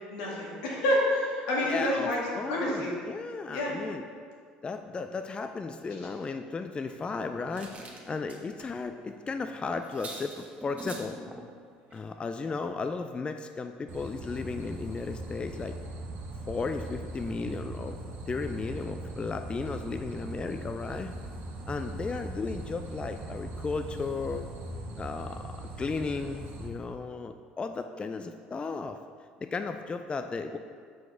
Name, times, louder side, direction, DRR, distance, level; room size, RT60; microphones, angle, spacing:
voice 1, 0.1-2.2 2.5-2.9 3.5-3.8, left 1 dB, 80° left, -4 dB, 1.8 m, -28 dB
voice 2, 1.6-4.1 4.6-7.7 8.1-11.2 11.9-15.8 16.5-18.0 18.3-21.1 21.7-24.5 25.0-29.0 29.4-30.6, left 4 dB, 25° left, 7 dB, 0.3 m, -35 dB
sound 1, 6.8-8.7 9.1-9.2 9.5-9.6 9.8-11.2 11.9-12.1 12.4-12.6 12.8-12.9, right 3 dB, 35° right, 1.2 m, -47 dB
sound 2, 7.1-8.6 10.5-11.5, right 1 dB, 10° right, 0.8 m, -46 dB
sound 3, 13.9-26.7, right 1 dB, 60° right, 1.1 m, -40 dB
6.0 x 4.9 x 4.7 m, 2.1 s
hypercardioid pair, 70°, 4 cm